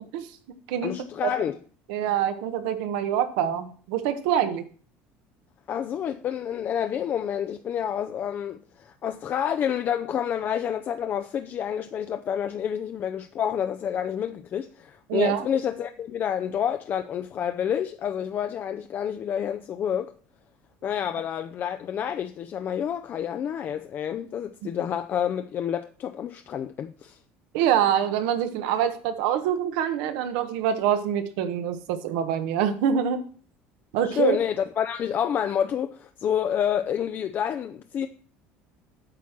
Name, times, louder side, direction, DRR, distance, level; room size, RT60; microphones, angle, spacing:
voice 1, 0.8-1.6 5.7-20.1 20.8-27.2 34.0-38.1, left 9 dB, 40° left, 0.5 m, -28 dB
voice 2, 1.9-4.6 15.1-15.5 27.5-33.2 33.9-34.4, right 9 dB, 80° right, 1.3 m, -25 dB
8.6 x 4.6 x 7.4 m
supercardioid pair, 115°, 5 cm